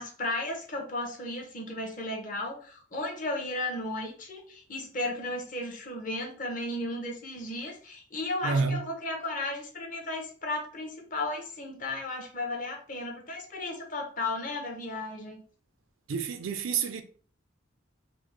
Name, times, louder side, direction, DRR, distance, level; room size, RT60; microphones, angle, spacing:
voice 1, 0.0-15.4, left 2 dB, 40° left, 0.7 m, -34 dB
voice 2, 8.4-8.8 16.1-17.0, right 5 dB, 85° right, 0.4 m, -29 dB
3.3 x 2.1 x 3.2 m
head